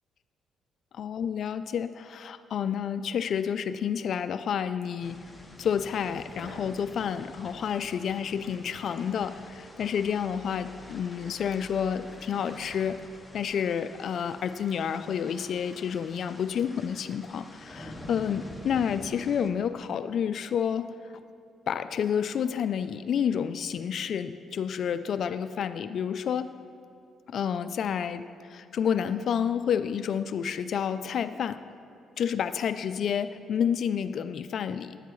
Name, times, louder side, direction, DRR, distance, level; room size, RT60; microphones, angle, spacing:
voice 1, 1.0-5.2 5.6-13.0 13.3-20.9 21.7-26.5 27.3-31.6 32.2-35.0, left 8 dB, 60° left, 11 dB, 0.4 m, -29 dB
sound 1, 5.0-19.5, left 1 dB, 10° left, 1.1 m, -48 dB
sound 2, 6.3-13.6, left 2 dB, 35° left, 1.6 m, -55 dB
sound 3, 6.3-12.9, equal, 25° right, 2.5 m, -53 dB
13.0 x 10.5 x 3.1 m, 2.6 s
cardioid pair, 90°, 0 cm